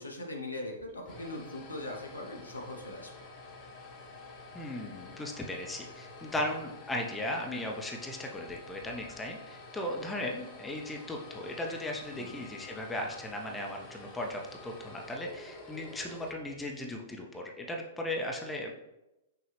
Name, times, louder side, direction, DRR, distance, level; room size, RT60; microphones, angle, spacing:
voice 1, 0.0-3.2 12.1-12.4, left 1 dB, 80° left, 0 dB, 0.9 m, -40 dB
sound 1, 0.8-17.0, left 3 dB, 35° left, 0.9 m, -49 dB
voice 2, 4.5-18.7, left 1 dB, 10° left, 0 dB, 0.6 m, -37 dB
6.0 x 2.3 x 3.4 m, 0.95 s
figure-of-eight pair, 105°, 0 cm